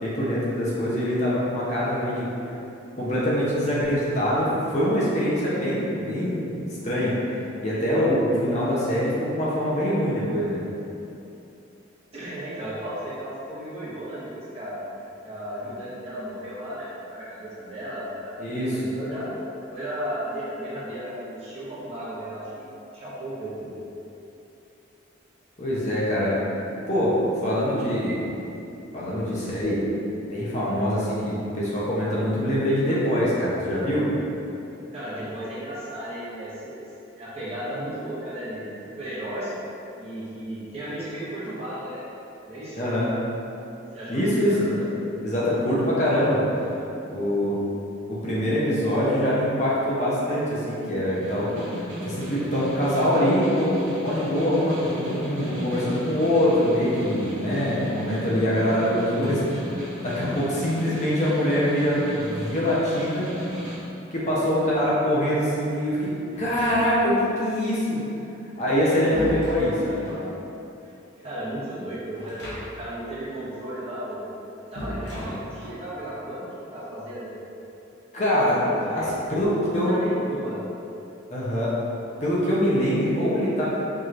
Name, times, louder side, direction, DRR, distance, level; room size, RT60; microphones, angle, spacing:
voice 1, 0.0-2.5 3.0-10.6 18.4-18.8 25.6-26.4 26.9-28.3 28.9-29.9 30.2-34.1 42.7-43.1 44.1-44.9 45.2-46.4 47.1-47.6 48.1-51.8 52.0-59.4 59.7-63.3 64.1-68.0 68.6-70.0 78.1-78.6 78.9-80.0 81.3-81.7 82.2-83.7, equal, 35° left, -8 dB, 0.7 m, -24 dB
voice 2, 12.1-14.8 15.2-18.4 18.7-19.3 19.7-22.7 22.9-23.7 34.9-36.9 37.2-39.5 40.0-42.0 42.4-42.8 43.9-44.7 68.7-69.1 69.8-70.3 70.8-74.3 74.7-77.3 78.3-80.6, right 1 dB, 30° right, -10 dB, 1.1 m, -35 dB
Snare drum, 51.1-63.8, equal, 85° right, 1.0 m, -35 dB
sound 1, 66.3-67.2 68.5-70.3 72.1-73.0 73.2-73.3 74.7-75.9, equal, 65° left, 1.0 m, -36 dB
4.7 x 3.0 x 2.5 m, 2.8 s
head